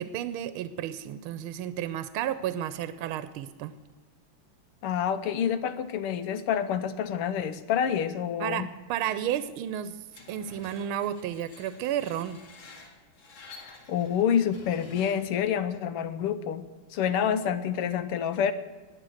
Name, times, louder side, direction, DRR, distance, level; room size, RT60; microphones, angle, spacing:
voice 1, 0.0-3.8 8.4-12.4 17.2-17.3, right 10 dB, 80° right, 12 dB, 1.5 m, -32 dB
voice 2, 4.8-8.7 13.6-16.7 16.9-18.5, left 8 dB, 90° left, 12 dB, 1.8 m, -28 dB
Screech, 10.1-15.4, left 3 dB, 65° left, 2.8 m, -50 dB
20.0 x 7.9 x 6.4 m, 1.3 s
omnidirectional pair, 2.4 m